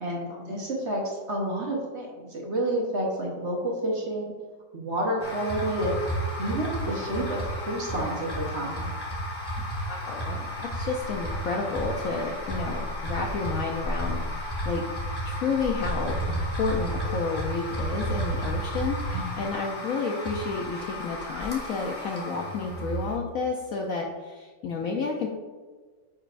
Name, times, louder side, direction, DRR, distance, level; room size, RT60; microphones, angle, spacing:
voice 1, 0.0-4.3 4.7-6.0 6.4-8.9, right 1 dB, 45° right, -2 dB, 1.1 m, -29 dB
sound 1, 5.2-23.2, equal, 15° left, 1.1 m, -32 dB
voice 2, 9.9-14.9 15.2-25.3, left 4 dB, 70° left, 1 dB, 0.8 m, -31 dB
9.7 x 4.4 x 2.5 m, 1.4 s
omnidirectional pair, 2.0 m